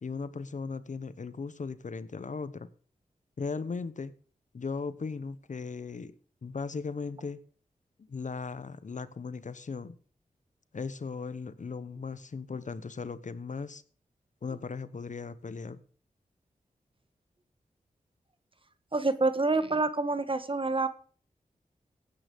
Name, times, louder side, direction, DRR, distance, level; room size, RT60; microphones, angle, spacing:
voice 1, 0.0-2.7 3.4-4.1 4.5-6.1 6.4-7.4 8.1-10.0 10.7-13.8 14.4-15.8, left 4 dB, 60° left, 15 dB, 1.0 m, -37 dB
voice 2, 18.9-20.9, right 3 dB, 35° right, 12 dB, 1.5 m, -27 dB
16.0 x 9.1 x 5.2 m, 0.43 s
cardioid pair, 50°, 15 cm